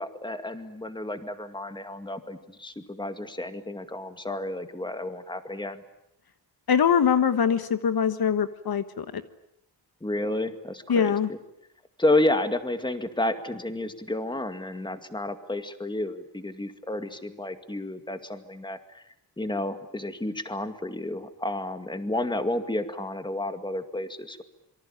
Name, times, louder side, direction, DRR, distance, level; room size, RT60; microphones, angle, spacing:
voice 1, 0.0-5.8 10.0-11.4 12.0-19.0 19.4-24.4, left 1 dB, 10° left, 9 dB, 2.2 m, -31 dB
voice 2, 6.7-9.2 10.9-11.3, left 7 dB, 60° left, 11 dB, 1.3 m, -23 dB
27.0 x 24.0 x 8.9 m, 0.79 s
wide cardioid pair, 145°, 41 cm